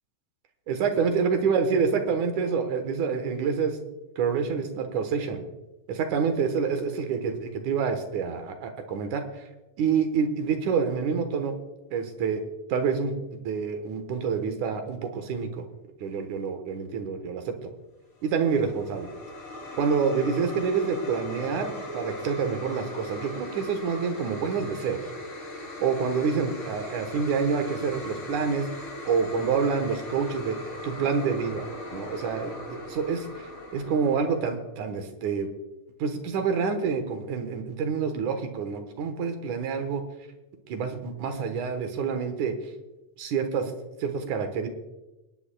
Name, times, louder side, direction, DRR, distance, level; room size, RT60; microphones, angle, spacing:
voice 1, 0.7-3.8 4.2-5.4 5.9-9.4 9.8-11.5 11.9-12.4 12.7-13.1 13.4-15.6 16.0-17.7 18.2-19.1 19.8-25.0 25.8-28.7 29.1-30.6 30.8-33.5 33.7-35.5 36.0-40.0 40.7-42.6 43.2-43.7 44.0-44.7, right 6 dB, 75° right, 7 dB, 2.7 m, -27 dB
sound 1, 18.2-34.6, left 1 dB, 60° left, 4.1 m, -39 dB
27.0 x 10.0 x 2.3 m, 1.0 s
omnidirectional pair, 3.5 m